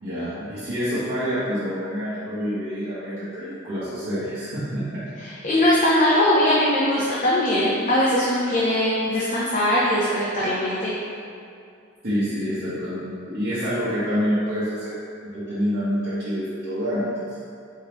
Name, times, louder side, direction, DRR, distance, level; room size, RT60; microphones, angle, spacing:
voice 1, 0.0-5.0 12.0-15.0 15.2-17.4, equal, 50° right, -14 dB, 1.1 m, -27 dB
voice 2, 5.4-11.0, left 1 dB, 40° left, -7 dB, 0.6 m, -20 dB
4.5 x 3.5 x 3.0 m, 2.5 s
head